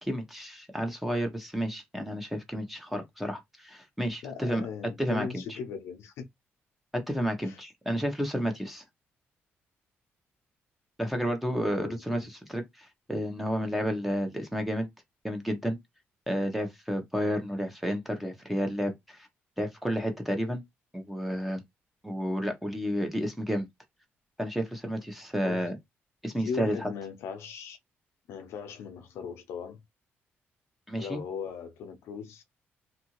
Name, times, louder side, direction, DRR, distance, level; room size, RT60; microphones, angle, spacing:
voice 1, 0.0-4.6 5.0-5.6 6.9-8.8 11.0-14.9 15.2-15.8 16.3-19.3 19.6-20.6 20.9-21.6 22.0-23.7 24.4-25.8 26.2-26.9 30.9-31.2, equal, 5° right, 0.7 m, -31 dB
voice 2, 4.2-6.3 7.4-7.6 11.6-12.3 25.4-25.7 26.4-27.8 28.3-29.8 31.0-32.4, left 6 dB, 90° left, 0.5 m, -38 dB
2.8 x 2.5 x 2.9 m
cardioid pair, 135°, 4 cm